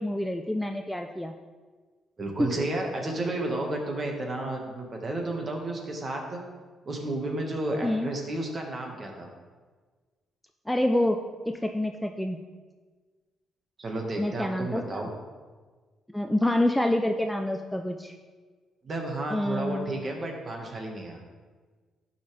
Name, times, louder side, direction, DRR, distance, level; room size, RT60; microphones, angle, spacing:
voice 1, 0.0-1.3 2.4-2.5 7.8-8.1 10.7-11.2 11.5-12.4 14.2-15.0 16.1-18.2 19.3-19.9, left 1 dB, 5° left, 4 dB, 0.5 m, -27 dB
voice 2, 2.2-6.4 6.8-9.3 13.8-15.1 18.8-21.2, right 2 dB, 40° right, 1 dB, 1.6 m, -32 dB
11.5 x 5.5 x 3.4 m, 1.4 s
cardioid pair, 90°, 0 cm